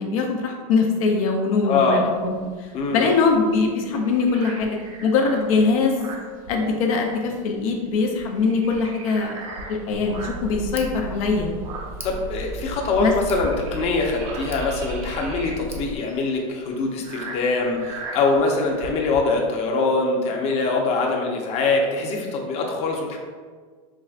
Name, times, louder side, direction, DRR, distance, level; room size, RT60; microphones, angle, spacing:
voice 1, 0.0-2.3 2.6-6.1 6.5-9.4 9.7-11.5 13.0-13.1, left 4 dB, 75° left, 1 dB, 0.6 m, -22 dB
voice 2, 1.6-2.1 2.7-3.1 12.0-23.2, left 3 dB, 35° left, 0 dB, 0.7 m, -23 dB
sound 1, 2.1-7.1 7.4-7.6 7.9-10.6 11.1-19.2, right 2 dB, 70° right, 0.9 m, -39 dB
Tick, 9.9-16.0, right 1 dB, 15° right, 0.4 m, -35 dB
4.7 x 3.2 x 2.4 m, 1.5 s
supercardioid pair, 135°, 18 cm